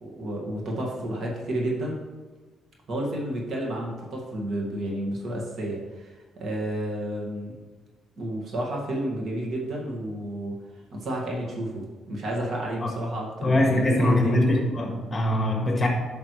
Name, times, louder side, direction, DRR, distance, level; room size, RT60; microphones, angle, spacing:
voice 1, 0.0-2.0 2.9-6.1 6.4-7.5 8.2-10.6 10.9-14.4, right 1 dB, 60° right, -2 dB, 2.0 m, -31 dB
voice 2, 13.4-15.9, left 1 dB, 25° left, 1 dB, 1.7 m, -22 dB
9.1 x 5.9 x 3.3 m, 1.3 s
cardioid pair, 90°, 0 cm